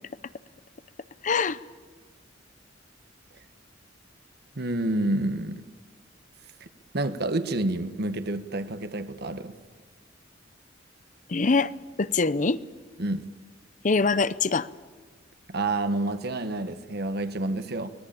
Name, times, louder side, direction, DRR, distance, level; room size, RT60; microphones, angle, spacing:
voice 1, 1.2-1.6 11.3-11.7 12.0-12.6 13.8-14.7, left 4 dB, 45° left, 0.7 m, -23 dB
voice 2, 4.5-5.7 6.6-6.7 6.9-9.5 13.0-13.2 15.5-17.9, right 2 dB, 60° right, 1.3 m, -28 dB
25.0 x 19.0 x 8.7 m
head